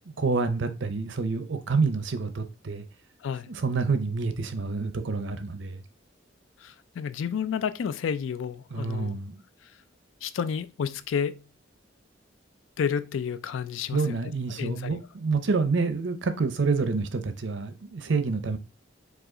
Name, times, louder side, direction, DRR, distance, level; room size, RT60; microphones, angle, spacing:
voice 1, 0.2-2.8 3.5-5.8 8.7-9.4 13.9-18.6, right 4 dB, 70° right, 0.6 m, -28 dB
voice 2, 6.6-9.2 10.2-11.4 12.8-14.0 14.6-15.0, left 7 dB, 80° left, 0.4 m, -30 dB
4.9 x 2.4 x 3.8 m
head